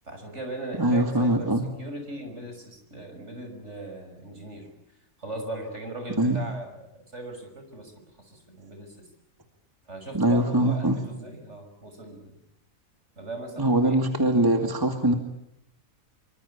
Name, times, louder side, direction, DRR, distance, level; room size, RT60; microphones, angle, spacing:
voice 1, 0.0-4.7 5.2-7.9 8.2-9.1 9.9-12.4 13.2-14.0, right 1 dB, 55° right, 5 dB, 6.4 m, -39 dB
voice 2, 0.8-1.7 6.2-6.4 10.1-11.0 13.6-15.1, right 1 dB, 15° right, 5 dB, 2.4 m, -22 dB
26.0 x 25.0 x 8.5 m, 0.78 s
omnidirectional pair, 1.5 m